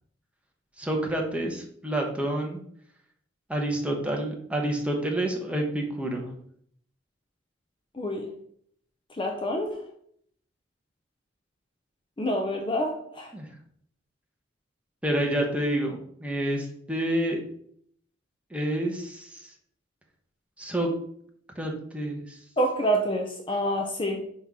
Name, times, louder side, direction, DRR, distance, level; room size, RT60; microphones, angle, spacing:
voice 1, 0.8-2.6 3.5-6.3 13.3-13.5 15.0-17.4 18.5-19.5 20.6-20.9 21.6-22.4, right 1 dB, 5° right, 1 dB, 1.0 m, -28 dB
voice 2, 7.9-8.3 9.2-9.8 12.2-13.3 22.6-24.2, equal, 25° left, 3 dB, 0.7 m, -27 dB
5.5 x 4.3 x 4.7 m, 0.65 s
head